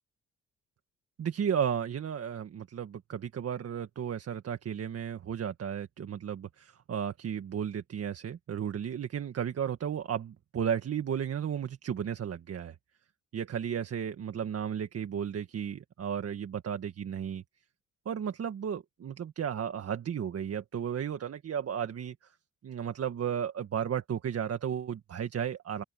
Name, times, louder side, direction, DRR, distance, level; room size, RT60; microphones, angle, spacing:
voice 1, 1.2-12.8 13.3-17.4 18.1-22.3 22.6-25.8, right 8 dB, 50° right, 1.8 m, -34 dB
open air
cardioid pair, 90°, 30 cm